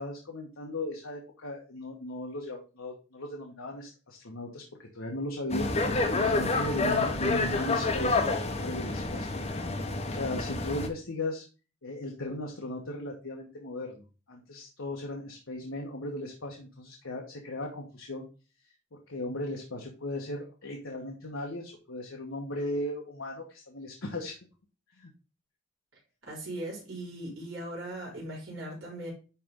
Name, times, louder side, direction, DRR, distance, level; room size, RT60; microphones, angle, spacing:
voice 1, 0.0-5.7 6.2-9.3 10.1-11.5 11.8-18.3 18.9-24.3 25.0-25.1, left 1 dB, 75° left, 0 dB, 1.2 m, -37 dB
sound 1, 5.5-10.9, left 3 dB, 30° left, 0.9 m, -28 dB
voice 2, 26.3-29.1, right 1 dB, 75° right, -4 dB, 4.1 m, -39 dB
10.0 x 3.4 x 3.7 m, 0.33 s
head